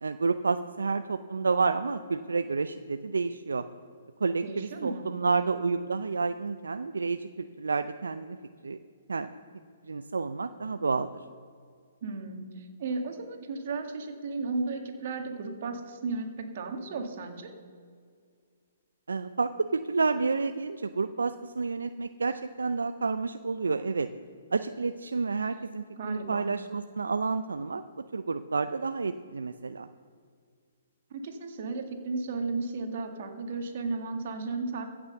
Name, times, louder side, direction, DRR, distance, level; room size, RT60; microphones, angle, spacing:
voice 1, 0.0-3.6 4.2-8.4 8.6-8.8 9.1-9.3 9.9-11.1 19.1-24.1 24.5-27.8 28.1-29.9, right 4 dB, 85° right, 10 dB, 0.4 m, -30 dB
voice 2, 4.4-5.1 12.0-17.5 26.0-26.5 31.1-34.8, right 3 dB, 55° right, 4 dB, 2.0 m, -34 dB
15.5 x 6.2 x 6.7 m, 2.1 s
hypercardioid pair, 135°, 0 cm